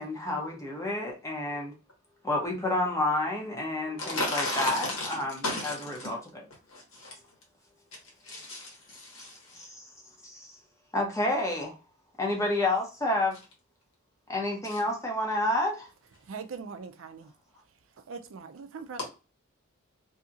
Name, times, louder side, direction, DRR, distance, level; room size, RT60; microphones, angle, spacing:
voice 1, 0.0-1.7 2.2-5.7 6.0-6.2 9.6-9.8 10.2-10.6 10.9-11.7 12.2-13.4 14.3-15.9, left 1 dB, 15° left, 0.7 m, -29 dB
voice 2, 4.0-6.2 6.7-7.2 7.9-9.6 14.6-14.8, left 2 dB, 75° left, 1.3 m, -35 dB
voice 3, 16.2-17.3 18.1-19.1, right 5 dB, 70° right, 0.4 m, -41 dB
2.7 x 2.7 x 2.4 m
head